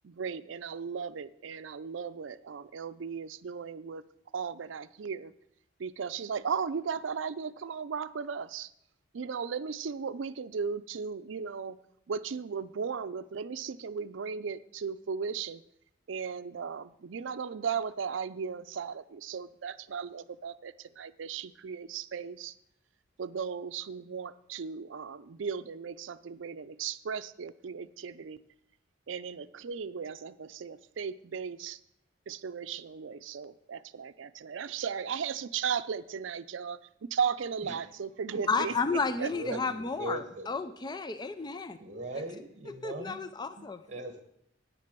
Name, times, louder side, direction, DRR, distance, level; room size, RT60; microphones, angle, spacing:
voice 1, 0.0-4.0 4.3-5.3 5.8-8.7 9.1-11.8 12.1-15.6 16.1-22.5 23.2-28.4 29.1-31.8 32.3-39.6, right 6 dB, 80° right, 14 dB, 0.5 m, -36 dB
voice 2, 38.5-41.8 42.8-43.8, left 4 dB, 20° left, 11 dB, 0.4 m, -32 dB
voice 3, 39.3-40.7 41.8-43.2 43.6-44.2, right 1 dB, 40° right, 6 dB, 1.3 m, -40 dB
9.1 x 6.8 x 6.7 m, 0.75 s
head